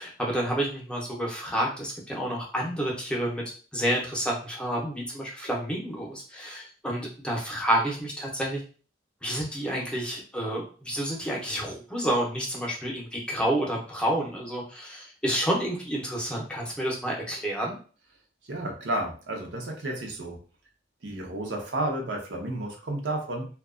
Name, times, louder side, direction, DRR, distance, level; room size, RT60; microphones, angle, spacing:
voice 1, 0.0-3.4 3.7-8.6 9.2-17.8, right 1 dB, 5° left, -3 dB, 0.6 m, -29 dB
voice 2, 18.5-20.4 21.0-23.5, right 1 dB, 85° right, 0 dB, 0.7 m, -31 dB
2.7 x 2.2 x 2.4 m, 0.39 s
head